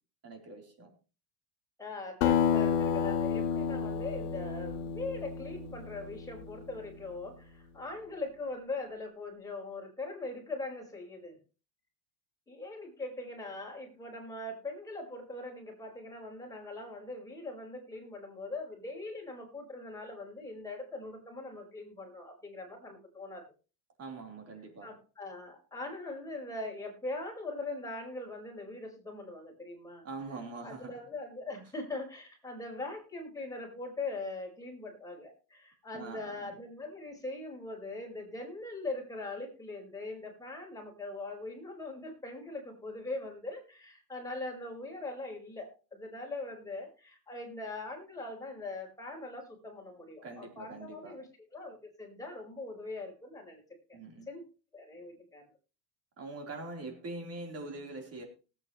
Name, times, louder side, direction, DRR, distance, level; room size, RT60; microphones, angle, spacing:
voice 1, 0.2-0.9 24.0-24.9 30.0-31.0 35.9-36.5 50.2-51.2 53.9-54.3 56.2-58.2, right 3 dB, 30° right, 4.0 m, -43 dB
voice 2, 1.8-11.4 12.5-23.4 24.8-30.1 30.6-53.6 53.9-54.0 54.3-54.4 54.7-55.4, left 2 dB, 5° left, 5.2 m, -41 dB
Acoustic guitar, 2.2-7.0, left 8 dB, 80° left, 1.8 m, -31 dB
18.5 x 8.9 x 3.2 m
supercardioid pair, 130°, 46 cm